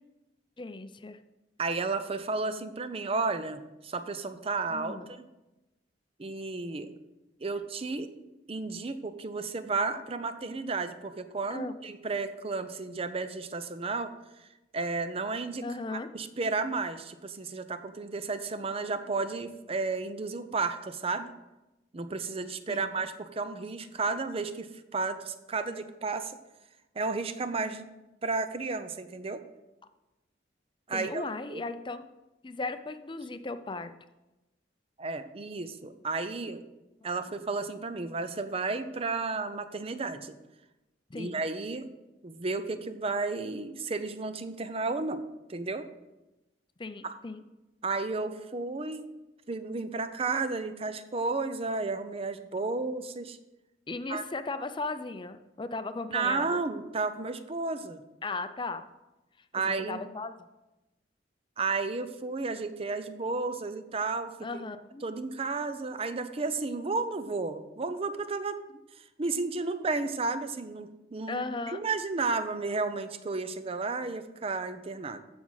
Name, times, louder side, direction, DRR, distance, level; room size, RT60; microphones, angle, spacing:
voice 1, 0.6-1.2 4.7-5.1 11.5-11.7 15.6-16.1 22.7-23.0 30.9-32.0 32.4-33.9 37.2-37.3 41.1-41.4 46.8-47.4 53.9-56.6 58.2-58.9 59.6-60.5 64.4-65.1 67.5-67.6 71.3-71.8, left 3 dB, 25° left, 10 dB, 0.5 m, -37 dB
voice 2, 1.6-5.0 6.2-6.9 7.4-8.1 8.5-14.1 14.7-15.6 15.9-21.3 21.9-24.7 24.9-26.4 27.0-27.9 28.2-29.4 30.9-31.2 31.5-31.6 35.0-36.6 37.0-40.3 41.2-41.9 42.2-45.2 45.5-45.9 47.0-47.2 47.8-49.1 49.5-53.4 54.1-54.2 56.1-58.0 59.5-60.0 61.6-64.3 65.0-68.6 69.2-75.2, right 3 dB, 35° right, 10 dB, 0.6 m, -32 dB
14.5 x 6.1 x 4.0 m, 1.0 s
head